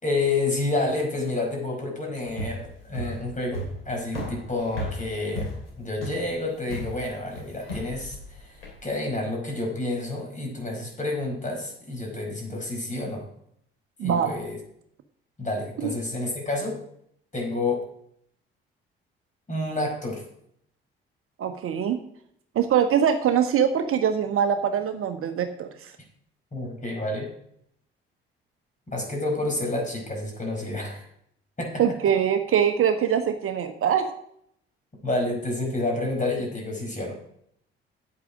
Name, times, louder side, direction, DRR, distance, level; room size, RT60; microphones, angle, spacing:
voice 1, 0.0-5.5 5.8-13.2 14.0-14.6 15.4-16.8 17.3-17.8 19.5-20.2 26.5-27.3 28.9-31.0 31.6-32.0 35.0-37.2, left 2 dB, 25° left, 1 dB, 5.1 m, -29 dB
sound 1, 2.3-8.8, equal, 85° left, 2.8 m, -35 dB
voice 2, 14.0-14.3 15.8-15.9 21.4-22.0 22.5-25.7 31.8-34.1, right 8 dB, 50° right, 8 dB, 1.0 m, -23 dB
9.9 x 8.4 x 5.0 m, 0.71 s
figure-of-eight pair, 45°, 29 cm